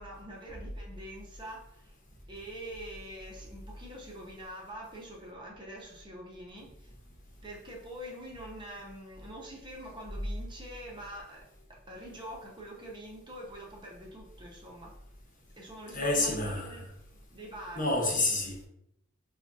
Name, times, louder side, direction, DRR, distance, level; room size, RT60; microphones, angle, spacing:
voice 1, 0.0-2.0 2.3-6.9 7.4-15.0 15.6-16.9 17.3-17.9, right 1 dB, 25° right, 0.7 m, -45 dB
voice 2, 15.9-16.9 17.7-18.7, left 2 dB, 45° left, 0.9 m, -29 dB
4.4 x 2.3 x 2.6 m
head